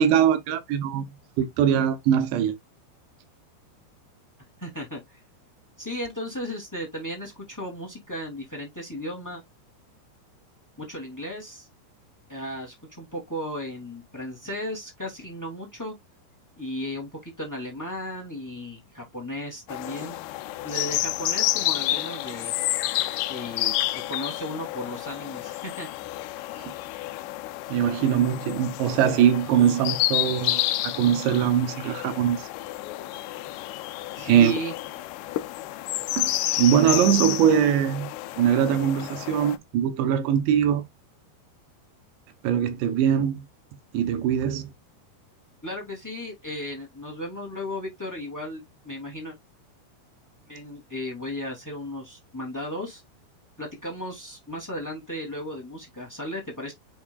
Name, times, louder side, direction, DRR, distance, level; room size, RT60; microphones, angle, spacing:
voice 1, 0.0-2.6 26.6-26.7 27.7-32.5 34.2-34.6 36.1-38.1 38.4-40.9 42.4-43.5 43.9-44.7, right 9 dB, 75° right, 3.1 m, -22 dB
voice 2, 4.6-5.2 5.8-9.4 10.8-11.7 12.3-15.9 16.6-20.2 20.6-22.5 23.3-23.7 24.1-25.9 34.1-34.7 45.6-49.3 50.5-53.0 53.6-56.7, left 1 dB, 10° left, 0.8 m, -35 dB
sound 1, 19.7-39.6, left 16 dB, 80° left, 2.5 m, -30 dB
7.1 x 5.9 x 2.3 m
omnidirectional pair, 5.3 m